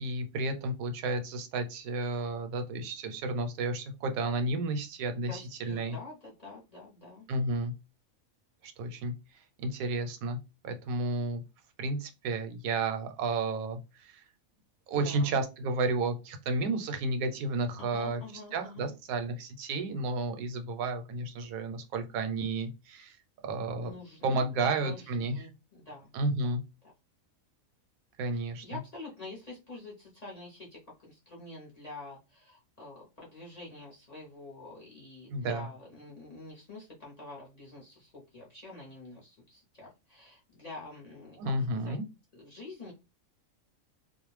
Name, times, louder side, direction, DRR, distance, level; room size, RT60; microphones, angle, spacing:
voice 1, 0.0-6.0 7.3-7.7 8.6-10.4 10.6-11.4 11.8-14.2 14.9-18.2 18.5-23.2 23.4-23.9 24.2-25.4 26.1-26.6 28.2-28.6 35.3-35.7 41.4-42.0, right 2 dB, 85° right, 7 dB, 1.0 m, -32 dB
voice 2, 5.3-7.3 14.9-15.4 17.8-18.9 23.8-26.1 26.4-26.6 28.3-42.0 42.3-42.9, left 2 dB, 40° left, -4 dB, 0.6 m, -47 dB
2.4 x 2.1 x 3.1 m, 0.28 s
omnidirectional pair, 1.5 m